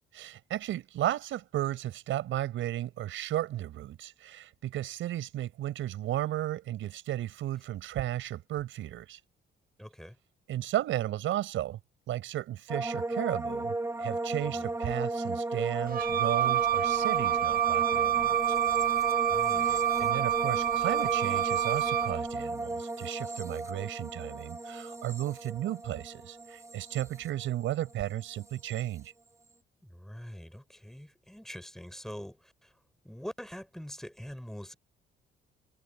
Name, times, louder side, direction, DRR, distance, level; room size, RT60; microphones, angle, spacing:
voice 1, 0.1-9.2 10.5-11.8 12.1-18.6 19.6-29.1, right 13 dB, 80° right, 5.8 m, -34 dB
voice 2, 9.8-10.2 14.4-14.7 19.3-19.9 29.8-32.7 33.0-34.8, equal, ahead, 4.6 m, -44 dB
sound 1, 12.7-27.9 28.2-28.8, right 2 dB, 15° right, 1.4 m, -35 dB
Wind instrument woodwind instrument, 15.9-22.2, right 12 dB, 45° right, 0.8 m, -28 dB
cardioid pair, 90°, 20 cm